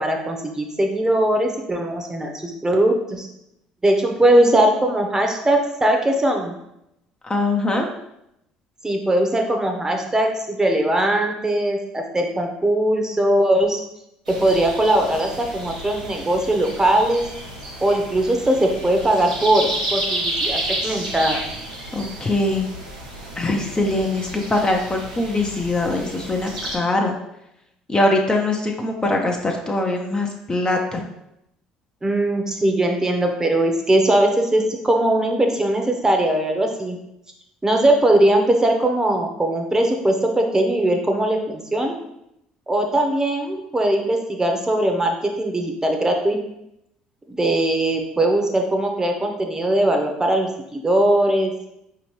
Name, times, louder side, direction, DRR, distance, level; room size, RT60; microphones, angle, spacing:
voice 1, 0.0-3.3 3.8-6.5 8.8-13.8 14.4-17.2 17.8-21.4 32.0-37.0 37.6-42.0 42.7-46.4 47.3-51.5, right 1 dB, 15° right, 3 dB, 0.8 m, -20 dB
voice 2, 7.2-7.9 21.9-22.7 23.4-27.2 27.9-31.0, left 2 dB, 20° left, 1 dB, 0.6 m, -22 dB
sound 1, 14.3-26.8, right 1 dB, 90° right, 0.7 m, -31 dB
5.0 x 2.9 x 3.1 m, 0.82 s
figure-of-eight pair, 55°, 4 cm